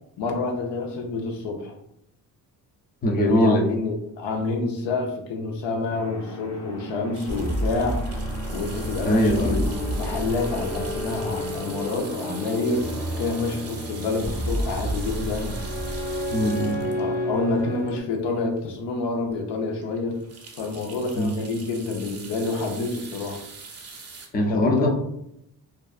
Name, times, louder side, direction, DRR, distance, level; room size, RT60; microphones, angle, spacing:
voice 1, 0.2-1.8 3.2-8.0 8.5-12.9 13.2-15.6 17.0-20.2 20.6-23.4 24.5-24.9, left 3 dB, 85° left, 2 dB, 0.7 m, -28 dB
voice 2, 3.0-3.7 9.1-9.6 16.3-16.8 21.2-21.4 24.3-24.9, left 1 dB, 25° left, 2 dB, 0.4 m, -21 dB
sound 1, 5.9-18.0, equal, 40° left, 0.9 m, -30 dB
sound 2, 7.1-18.4 18.9-19.0 19.3-19.4 19.8-24.3, right 4 dB, 35° right, 0.6 m, -43 dB
2.4 x 2.3 x 2.3 m, 0.78 s
cardioid pair, 90°, 41 cm